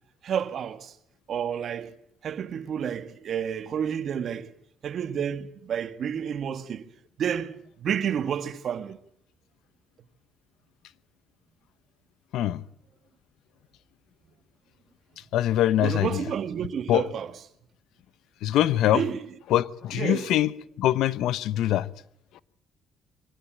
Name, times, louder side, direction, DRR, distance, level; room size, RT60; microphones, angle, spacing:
voice 1, 0.2-0.9 1.3-2.0 2.2-4.5 4.8-6.8 7.2-9.0 15.8-17.3 18.9-19.3 19.9-20.4, right 8 dB, 60° right, 1.7 m, -30 dB
voice 2, 15.3-16.2 16.9-17.0 18.4-19.0 19.5-20.5 20.8-21.9, left 13 dB, 80° left, 0.9 m, -23 dB
23.0 x 18.5 x 9.0 m
cardioid pair, 80°, 0 cm